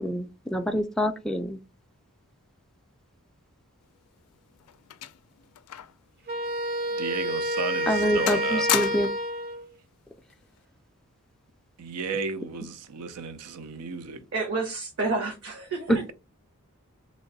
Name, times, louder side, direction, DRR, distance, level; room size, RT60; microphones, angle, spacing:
voice 1, 0.0-1.6 7.9-9.1, equal, ahead, 0.3 m, -26 dB
sound 1, 4.0-6.1 6.4-6.5 7.2-7.3 7.7-8.0 8.3-9.3 10.3-10.6, left 12 dB, 85° left, 0.3 m, -33 dB
Wind instrument woodwind instrument, 6.3-9.6, equal, 45° right, 0.6 m, -28 dB
voice 2, 6.9-8.7 11.8-14.2 15.9-16.0, right 4 dB, 90° right, 0.5 m, -34 dB
voice 3, 14.3-15.9, right 3 dB, 60° right, 1.1 m, -29 dB
3.1 x 2.6 x 3.8 m
head